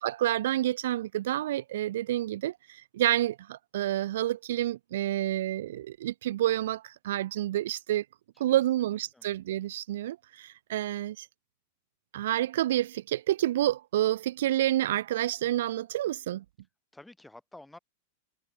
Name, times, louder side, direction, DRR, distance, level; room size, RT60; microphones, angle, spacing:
voice 1, 0.0-8.0 8.4-11.3 12.1-16.4, right 13 dB, 65° right, 0.4 m, -29 dB
voice 2, 8.5-9.3 15.1-15.3 16.9-17.8, left 2 dB, 5° left, 5.7 m, -52 dB
hypercardioid pair, 100°, 0 cm